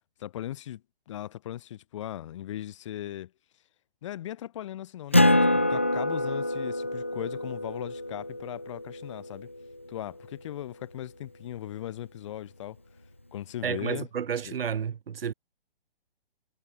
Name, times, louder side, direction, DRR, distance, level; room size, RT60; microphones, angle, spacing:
voice 1, 0.2-3.3 4.0-9.5 9.9-12.8 13.3-14.1 14.4-14.6, left 12 dB, 30° left, 2.9 m, -38 dB
Acoustic guitar, 5.1-10.1, left 1 dB, 15° left, 0.4 m, -26 dB
voice 2, 13.6-15.3, right 7 dB, 70° right, 1.2 m, -31 dB
hypercardioid pair, 175°, 30 cm